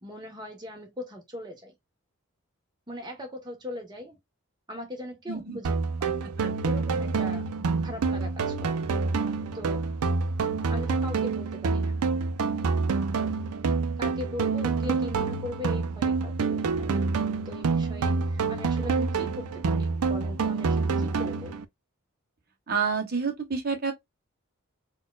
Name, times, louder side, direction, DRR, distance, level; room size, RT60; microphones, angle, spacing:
voice 1, 0.0-1.7 2.9-4.2 4.7-6.2 6.6-7.5 7.8-8.9 9.5-9.8 10.7-12.0 14.0-17.1 17.4-21.6, left 1 dB, 20° right, 1.0 m, -40 dB
voice 2, 5.3-5.6 6.4-6.5 22.7-23.9, right 5 dB, 45° right, 0.9 m, -28 dB
sound 1, 5.6-21.6, right 4 dB, 85° right, 0.4 m, -27 dB
4.3 x 2.3 x 2.2 m
head